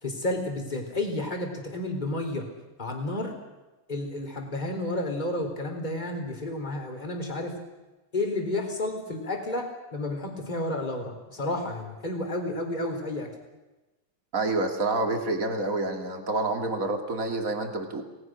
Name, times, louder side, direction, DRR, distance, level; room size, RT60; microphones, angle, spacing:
voice 1, 0.0-2.5 2.8-3.3 3.9-7.6 8.1-13.3, left 2 dB, 10° left, 3 dB, 3.8 m, -31 dB
voice 2, 14.3-18.0, right 2 dB, 25° right, 4 dB, 2.4 m, -28 dB
29.5 x 19.5 x 6.3 m, 1.1 s
omnidirectional pair, 4.0 m